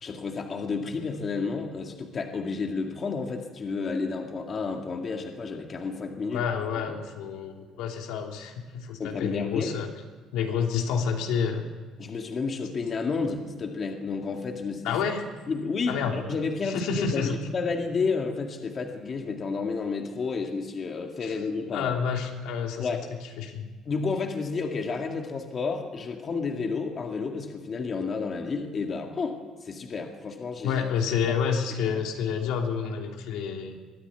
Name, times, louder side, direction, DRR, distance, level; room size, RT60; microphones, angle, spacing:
voice 1, 0.0-6.4 9.0-9.7 12.0-15.0 15.5-21.9 22.8-23.0 23.9-30.8 31.3-31.4 31.9-32.0, left 4 dB, 30° left, 3 dB, 2.0 m, -31 dB
voice 2, 6.3-9.9 10.3-11.7 14.8-15.2 15.9-16.2 16.6-17.3 21.2-21.3 21.7-22.9 23.4-23.7 30.6-33.8, left 6 dB, 85° left, 2 dB, 3.0 m, -29 dB
22.5 x 14.5 x 9.4 m, 1.4 s
cardioid pair, 165°, 0 cm